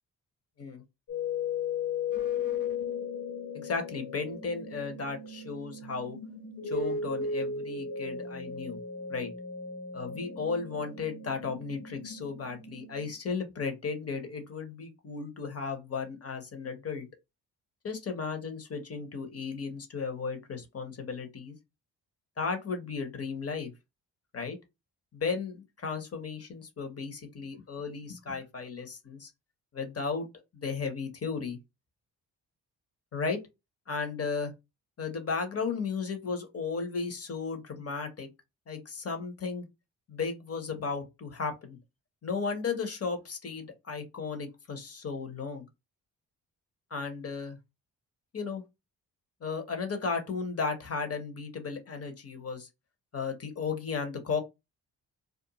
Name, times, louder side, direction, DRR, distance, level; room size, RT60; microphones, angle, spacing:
sound 1, 1.1-13.1, left 5 dB, 55° left, 1.3 m, -36 dB
voice 1, 3.5-6.2 6.6-8.8 9.1-9.3 9.9-17.1 17.8-21.5 22.4-23.7 24.3-24.6 25.1-29.3 29.7-30.3 30.5-31.6 33.1-33.4 33.9-34.5 35.0-38.3 38.7-39.7 40.1-41.8 42.2-45.7 46.9-47.6 48.3-48.6 49.4-52.7 53.1-54.4, left 5 dB, 35° left, 1.0 m, -35 dB
2.5 x 2.1 x 2.9 m
hypercardioid pair, 45°, 44 cm